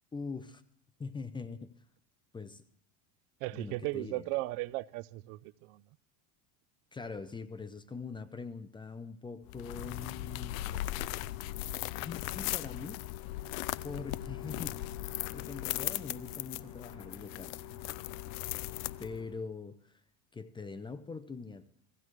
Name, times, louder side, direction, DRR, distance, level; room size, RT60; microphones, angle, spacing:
voice 1, 0.1-0.6 1.0-1.7 2.3-2.6 3.5-4.3 6.9-10.6 12.0-13.0 13.8-17.6 19.0-20.0 20.3-21.7, left 4 dB, 10° left, 0.5 m, -43 dB
voice 2, 3.4-5.8, right 19 dB, 75° right, 0.5 m, -36 dB
sound 1, 9.5-19.4, left 16 dB, 85° left, 0.5 m, -38 dB
Bowed string instrument, 14.0-19.5, equal, 5° right, 4.6 m, -57 dB
16.5 x 15.0 x 3.1 m
supercardioid pair, 130°, 40 cm